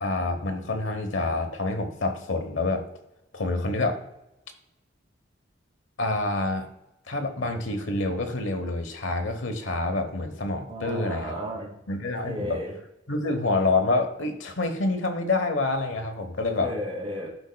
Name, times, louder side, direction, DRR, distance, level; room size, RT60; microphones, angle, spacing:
voice 1, 0.0-2.8 3.3-4.0 6.0-6.7 7.1-11.3 11.9-12.6 13.1-16.7, left 2 dB, 90° left, 6 dB, 1.1 m, -27 dB
voice 2, 10.7-11.7 12.2-12.7 16.6-17.3, equal, 30° right, -3 dB, 2.5 m, -33 dB
12.5 x 5.3 x 2.3 m, 0.89 s
head